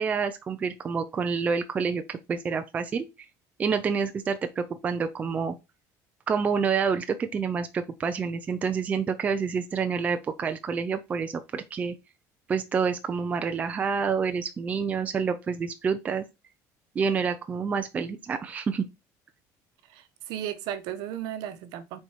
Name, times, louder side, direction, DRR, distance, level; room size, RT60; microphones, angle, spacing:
voice 1, 0.0-3.1 3.6-5.5 6.3-11.9 12.5-16.3 16.9-18.8, right 5 dB, 20° right, 0.6 m, -28 dB
voice 2, 19.9-22.0, right 11 dB, 65° right, 1.1 m, -35 dB
6.5 x 4.6 x 4.6 m
cardioid pair, 180°, 7 cm